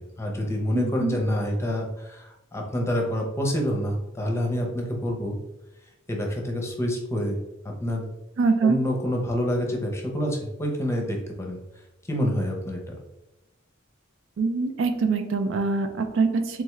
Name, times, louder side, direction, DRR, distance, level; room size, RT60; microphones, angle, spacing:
voice 1, 0.0-5.4 6.1-7.4 7.8-8.1 8.6-11.6 12.1-13.0, equal, 15° left, 0 dB, 0.7 m, -27 dB
voice 2, 0.7-1.2 8.4-8.8 14.4-16.6, right 4 dB, 65° right, 7 dB, 0.4 m, -24 dB
3.5 x 3.5 x 3.1 m, 0.93 s
head